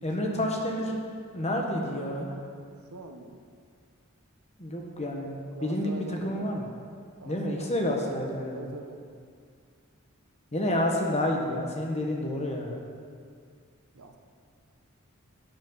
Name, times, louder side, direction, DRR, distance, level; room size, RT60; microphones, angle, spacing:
voice 1, 0.0-1.0 1.3-2.4 4.6-5.3 5.6-6.6 7.2-8.6 10.5-12.8, left 1 dB, 30° left, 0 dB, 1.4 m, -29 dB
voice 2, 2.8-3.4 5.5-6.5 7.2-7.6 8.5-9.0 13.9-14.2, right 2 dB, 75° right, 4 dB, 1.0 m, -43 dB
12.5 x 8.8 x 4.0 m, 2.2 s
head